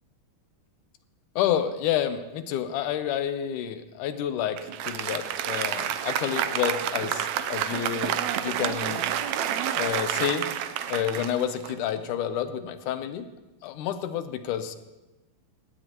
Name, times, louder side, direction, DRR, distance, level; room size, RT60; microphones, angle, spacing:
voice 1, 1.4-9.0 9.7-10.5 10.9-13.3 13.6-14.8, left 10 dB, 75° left, 10 dB, 2.2 m, -29 dB
Applause, 4.6-12.2, right 10 dB, 90° right, 1.6 m, -29 dB
20.0 x 16.0 x 3.0 m, 1.1 s
omnidirectional pair, 3.9 m